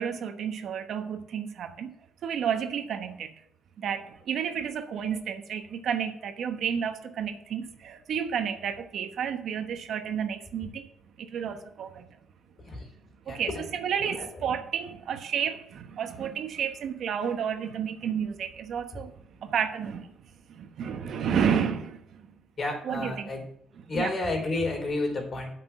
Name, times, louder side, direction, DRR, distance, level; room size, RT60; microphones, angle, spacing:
voice 1, 0.0-1.9 2.2-3.3 3.8-10.9 11.2-12.1 13.3-19.1 19.4-20.1 20.5-22.3 22.8-23.1 23.9-24.1, right 7 dB, 70° right, 1.1 m, -31 dB
voice 2, 13.3-13.6 14.0-14.5 18.9-19.0 22.6-23.4 23.9-25.5, left 2 dB, 40° left, 4.5 m, -31 dB
9.1 x 6.0 x 7.4 m
cardioid pair, 90°, 0 cm